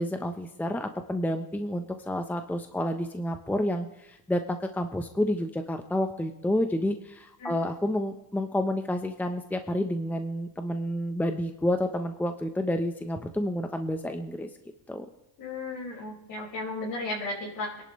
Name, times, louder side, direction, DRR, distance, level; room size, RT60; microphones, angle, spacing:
voice 1, 0.0-14.5 14.9-15.0, left 1 dB, 5° left, 6 dB, 0.9 m, -29 dB
voice 2, 15.4-17.8, left 2 dB, 50° left, -4 dB, 5.5 m, -35 dB
25.0 x 11.5 x 3.3 m, 0.90 s
cardioid pair, 130°, 42 cm